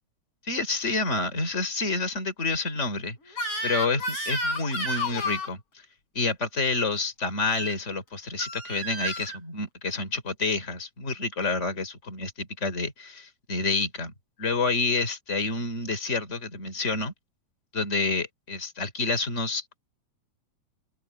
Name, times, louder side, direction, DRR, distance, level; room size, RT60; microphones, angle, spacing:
voice 1, 0.4-3.4 3.6-5.6 6.2-14.1 14.4-17.1 17.7-19.8, left 3 dB, 25° left, 3.9 m, -28 dB
Crying sobbing / Screech, 3.3-5.5 7.4-7.7 8.4-9.4, equal, 50° left, 6.5 m, -31 dB
open air
omnidirectional pair, 3.4 m